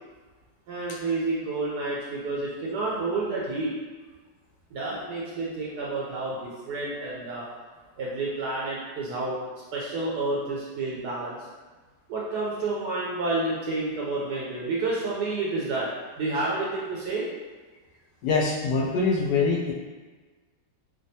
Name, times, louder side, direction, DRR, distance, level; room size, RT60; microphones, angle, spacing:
voice 1, 0.7-3.7 4.7-7.5 8.0-9.4 9.7-11.4 12.1-15.9 16.2-17.3, right 3 dB, 70° right, -5 dB, 1.1 m, -29 dB
voice 2, 18.2-19.7, left 4 dB, 80° left, -2 dB, 1.3 m, -24 dB
3.3 x 2.3 x 2.7 m, 1.3 s
omnidirectional pair, 1.9 m